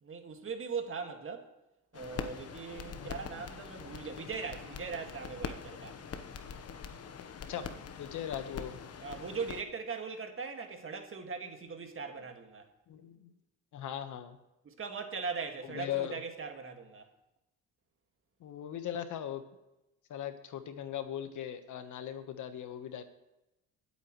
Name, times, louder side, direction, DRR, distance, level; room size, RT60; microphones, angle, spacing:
voice 1, 0.0-1.5 1.9-6.0 9.0-12.7 14.6-17.1, right 5 dB, 40° right, 2.0 m, -40 dB
sound 1, 1.9-9.6, left 6 dB, 50° left, 1.1 m, -43 dB
voice 2, 2.9-3.3 7.5-8.8 12.9-13.3 13.7-14.4 15.7-16.2 18.4-19.4 20.1-23.0, left 10 dB, 65° left, 1.3 m, -39 dB
19.0 x 8.4 x 3.1 m
supercardioid pair, 80°, 33 cm